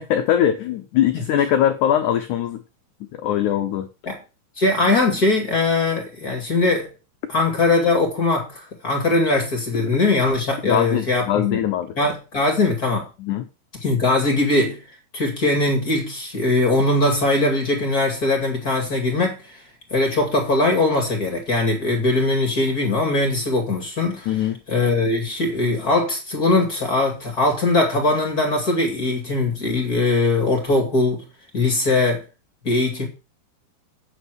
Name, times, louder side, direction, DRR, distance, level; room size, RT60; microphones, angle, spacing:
voice 1, 0.0-2.6 3.1-3.9 10.6-11.9 13.2-13.4 24.3-24.6, left 10 dB, 85° left, 1.7 m, -21 dB
voice 2, 4.6-6.9 7.3-11.6 12.0-13.1 13.8-14.8 15.1-19.4 19.9-24.3 24.7-31.2 31.5-32.2 32.6-33.1, left 2 dB, 30° left, 2.2 m, -20 dB
8.8 x 7.0 x 6.3 m
omnidirectional pair, 4.6 m